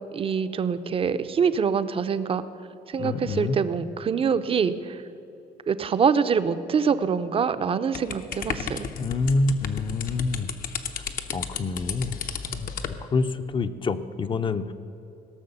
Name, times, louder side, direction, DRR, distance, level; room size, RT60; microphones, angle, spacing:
voice 1, 0.1-2.4 2.9-5.0 5.7-8.9, right 6 dB, 35° right, 12 dB, 0.6 m, -25 dB
voice 2, 3.0-3.6 9.0-10.5 11.3-12.2 12.5-12.7 13.1-14.7, left 3 dB, 30° left, 12 dB, 0.6 m, -26 dB
sound 1, 7.9-13.0, left 7 dB, 55° left, 0.8 m, -33 dB
17.0 x 6.3 x 6.8 m, 2.9 s
cardioid pair, 110°, 17 cm